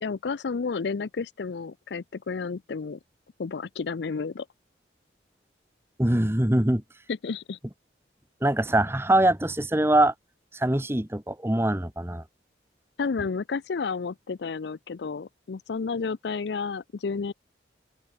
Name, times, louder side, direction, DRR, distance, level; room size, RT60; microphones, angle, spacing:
voice 1, 0.0-3.0 3.4-4.5 7.1-7.6 13.0-17.3, left 5 dB, 70° left, 0.5 m, -31 dB
voice 2, 6.0-6.8 8.4-10.1 10.5-12.2, right 1 dB, 15° right, 1.2 m, -23 dB
open air
head